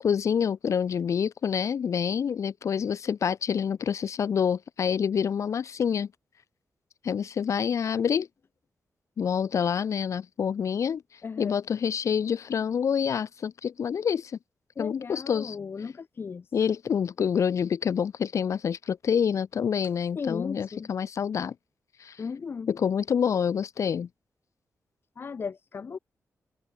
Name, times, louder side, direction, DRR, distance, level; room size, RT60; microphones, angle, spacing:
voice 1, 0.0-6.1 7.0-8.3 9.2-14.4 14.8-15.6 16.5-21.5 22.0-22.2 22.7-24.1, left 7 dB, 60° left, 1.4 m, -27 dB
voice 2, 11.2-11.6 14.8-16.4 20.1-20.9 22.2-22.7 25.2-26.0, left 5 dB, 40° left, 1.5 m, -36 dB
wide cardioid pair, 175°, 6 cm